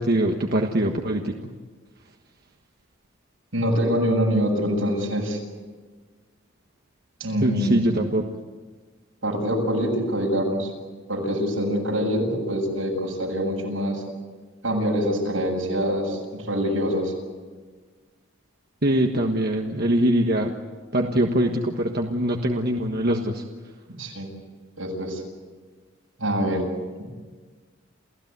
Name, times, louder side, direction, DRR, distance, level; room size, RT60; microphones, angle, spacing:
voice 1, 0.0-1.3 7.4-8.2 18.8-20.5 20.9-23.4, right 1 dB, 50° right, 2 dB, 1.4 m, -23 dB
voice 2, 3.5-5.4 7.2-7.8 9.2-10.7 11.1-14.0 14.6-17.1 24.0-24.3 24.8-25.2 26.2-26.6, equal, 85° right, 0 dB, 7.6 m, -25 dB
29.0 x 16.5 x 9.5 m, 1.4 s
head